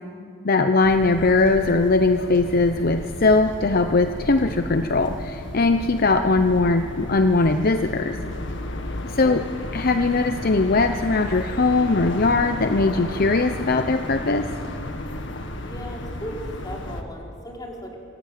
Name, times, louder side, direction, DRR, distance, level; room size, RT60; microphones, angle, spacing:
voice 1, 0.4-8.2 9.1-9.5 9.7-14.5, left 3 dB, 50° left, 8 dB, 0.8 m, -20 dB
sound 1, 0.8-17.0, left 1 dB, 65° left, 1.8 m, -33 dB
voice 2, 15.6-18.0, equal, 20° left, -2 dB, 4.3 m, -37 dB
25.0 x 16.5 x 9.2 m, 2.3 s
head